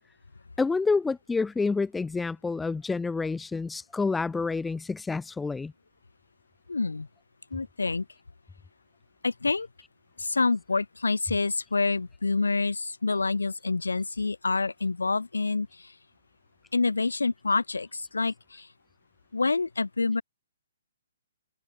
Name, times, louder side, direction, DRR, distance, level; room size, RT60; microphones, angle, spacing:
voice 1, 0.6-5.7, left 4 dB, 5° left, 0.5 m, -28 dB
voice 2, 6.7-7.1 7.5-8.1 9.2-9.7 10.2-15.9 16.7-18.7 19.3-20.2, left 3 dB, 70° left, 2.3 m, -27 dB
figure-of-eight pair, 125°, 0 cm